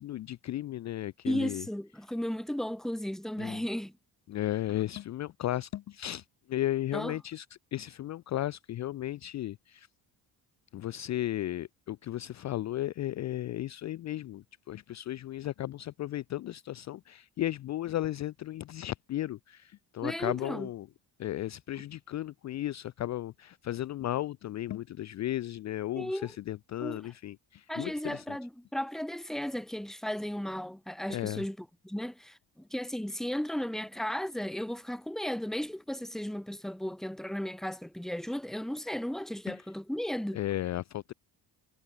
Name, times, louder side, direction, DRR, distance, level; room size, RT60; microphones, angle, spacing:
voice 1, 0.0-1.7 3.4-3.6 4.3-7.5 7.7-9.9 10.7-20.9 21.2-28.4 31.1-31.4 39.5-39.6 40.3-41.1, left 13 dB, 45° left, 0.5 m, -35 dB
voice 2, 1.2-3.9 6.9-7.2 20.0-20.7 26.0-26.3 26.8-27.0 27.7-40.4, equal, ahead, 1.1 m, -35 dB
cardioid pair, 115°, 39 cm